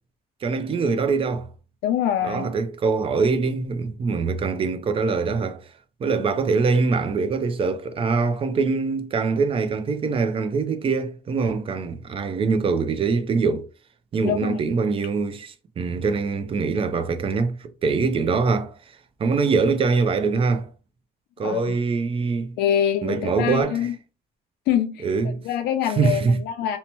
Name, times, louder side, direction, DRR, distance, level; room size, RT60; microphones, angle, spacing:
voice 1, 0.4-1.5 2.2-5.7 6.0-13.7 14.1-18.7 19.2-20.7 21.4-22.5 23.0-23.8 25.0-25.4 26.0-26.4, right 4 dB, 35° right, 0.4 m, -23 dB
voice 2, 1.8-2.5 14.2-14.6 21.4-21.7 22.6-24.0 24.7-25.1 25.4-26.8, left 10 dB, 75° left, 0.4 m, -24 dB
2.8 x 2.2 x 2.9 m
cardioid pair, 110°, 17 cm